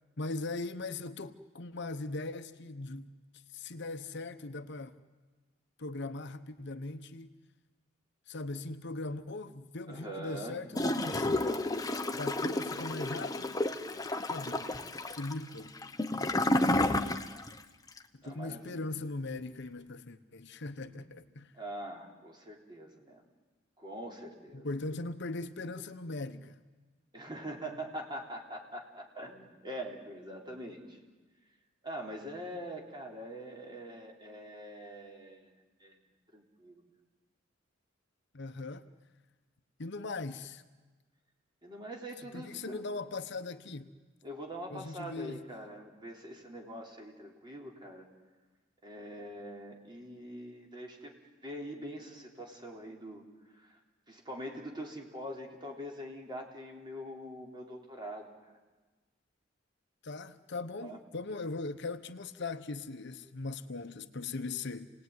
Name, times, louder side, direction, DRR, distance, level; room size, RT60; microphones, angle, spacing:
voice 1, 0.2-3.1 3.5-5.0 5.8-7.3 8.3-11.8 12.1-13.6 14.3-14.7 15.1-15.7 18.1-21.5 24.5-26.6 38.3-38.8 39.8-40.6 42.3-43.9 44.7-45.4 60.0-64.9, left 3 dB, 60° left, 1.0 m, -39 dB
voice 2, 9.9-10.6 14.6-14.8 18.2-18.9 20.8-21.1 21.5-23.2 23.8-24.7 27.1-31.0 31.8-35.5 35.8-36.0 36.3-36.8 41.6-42.9 44.2-48.1 48.8-51.1 51.4-53.2 53.5-53.8 54.1-58.3 60.8-61.0, equal, 25° right, 3.7 m, -43 dB
Gurgling / Toilet flush, 10.7-17.6 17.9-18.0, left 1 dB, 20° left, 1.1 m, -31 dB
28.5 x 19.0 x 9.6 m
head